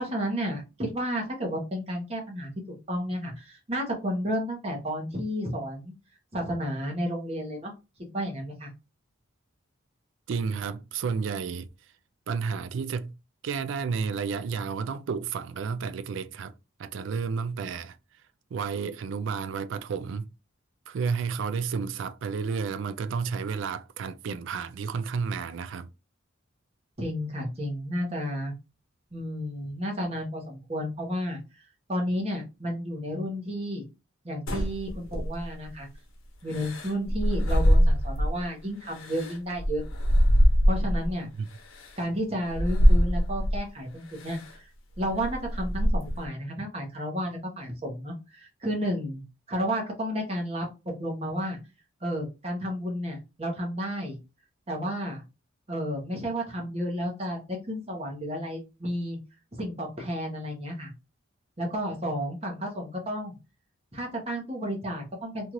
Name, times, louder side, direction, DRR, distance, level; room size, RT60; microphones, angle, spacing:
voice 1, 0.0-2.5 2.9-5.9 6.3-7.7 8.1-8.7 27.0-28.5 29.1-31.4 31.9-33.8 34.2-35.9 36.4-39.8 40.6-41.3 42.0-44.7 45.0-49.2 49.5-51.6 52.0-54.2 54.7-55.2 55.7-59.2 59.5-60.9 61.6-63.3 63.9-65.5, equal, 30° right, 1.0 m, -32 dB
voice 2, 10.3-11.7 12.3-13.1 13.4-16.5 16.8-18.0 18.5-20.3 20.9-25.9 41.4-41.5, right 5 dB, 65° right, 0.3 m, -31 dB
sound 1, 34.5-35.7 36.5-38.4 38.9-41.1 41.8-41.9 42.5-43.6 44.2-44.5 44.9-46.3, equal, 85° left, 0.8 m, -23 dB
2.8 x 2.5 x 3.0 m
head